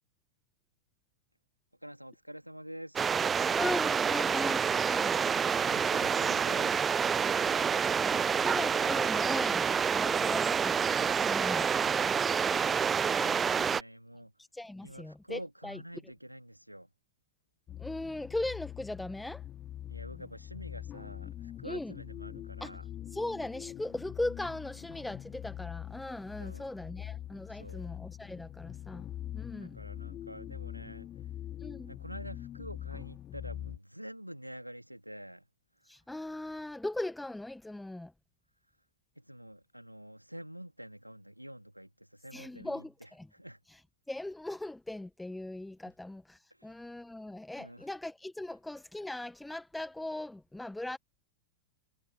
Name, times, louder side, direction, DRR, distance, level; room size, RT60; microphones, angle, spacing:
voice 1, 1.8-3.1 5.7-7.0 13.2-14.3 14.8-16.9 19.9-22.8 26.4-26.6 27.5-27.9 29.5-31.3 31.9-35.5 35.8-36.0 39.2-43.6 46.5-46.7 47.6-47.9, equal, 90° right, 2.6 m, -47 dB
sound 1, 3.0-13.8, right 6 dB, 20° right, 0.5 m, -28 dB
voice 2, 3.6-5.2 8.0-10.8 11.2-11.7 13.5-13.7 14.4-15.8 17.8-19.4 21.6-21.9 22.6-22.7 23.1-29.1 29.3-29.8 31.6-32.0 35.8-38.1 42.3-43.3 44.1-51.0, left 1 dB, 5° left, 1.4 m, -39 dB
sound 2, 17.7-33.8, left 12 dB, 30° left, 2.3 m, -43 dB
figure-of-eight pair, 90°, 0 cm